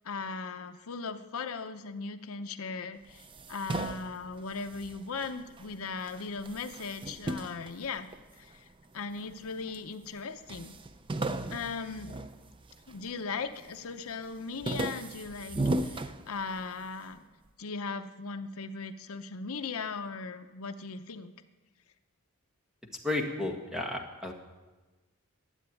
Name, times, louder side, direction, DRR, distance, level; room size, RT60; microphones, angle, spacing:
voice 1, 0.0-8.1 8.4-8.6 8.9-10.7 11.5-12.1 12.9-17.3 17.6-21.3, left 4 dB, 75° left, 8 dB, 0.7 m, -38 dB
sound 1, 3.1-5.7 6.1-8.6 9.2-9.9 10.1-10.2 10.5-13.1 13.5-13.9 14.3-16.8, right 2 dB, 25° right, 0.5 m, -36 dB
voice 2, 23.0-24.3, left 2 dB, 5° right, 1 dB, 1.5 m, -32 dB
13.0 x 7.9 x 9.1 m, 1.2 s
head